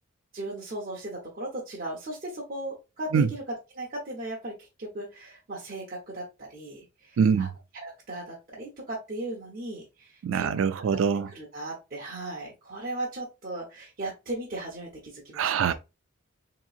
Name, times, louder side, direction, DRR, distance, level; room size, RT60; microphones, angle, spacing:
voice 1, 0.3-7.5 7.7-10.7 11.3-15.7, right 1 dB, 45° right, 0.8 m, -37 dB
voice 2, 7.2-7.5 10.2-11.3 15.3-15.7, right 6 dB, 75° right, 0.3 m, -24 dB
3.6 x 2.9 x 2.4 m
head